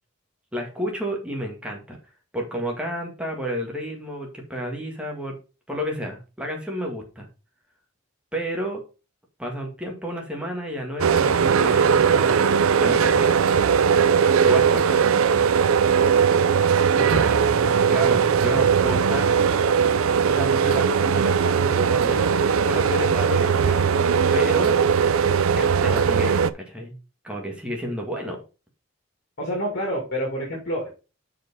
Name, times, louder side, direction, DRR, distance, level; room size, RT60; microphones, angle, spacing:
voice 1, 0.5-2.0 2.3-5.4 5.7-7.3 8.3-8.8 9.4-12.5 12.8-13.4 14.4-15.4 17.0-17.3 17.9-19.3 20.3-23.8 24.3-24.8 25.5-27.0 27.2-28.4, equal, 5° right, 0 dB, 1.8 m, -31 dB
sound 1, 11.0-26.5, right 6 dB, 85° right, 0.5 m, -19 dB
voice 2, 29.4-30.9, equal, 50° left, -2 dB, 2.5 m, -27 dB
6.0 x 5.0 x 5.4 m, 0.32 s
head